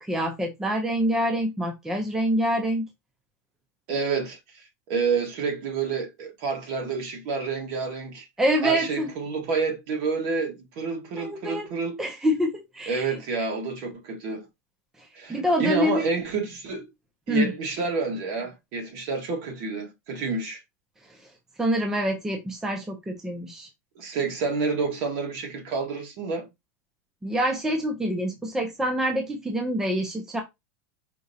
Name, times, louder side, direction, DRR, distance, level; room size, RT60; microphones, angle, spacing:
voice 1, 0.0-2.9 8.4-9.1 11.2-11.7 12.0-13.1 15.3-16.1 17.3-17.5 21.6-23.7 27.2-30.4, equal, 5° right, 0.5 m, -26 dB
voice 2, 3.9-8.3 8.6-12.0 12.9-14.4 15.1-16.9 17.3-20.6 23.9-26.5, right 4 dB, 45° right, 1.5 m, -29 dB
5.0 x 2.9 x 2.7 m
supercardioid pair, 160°, 9 cm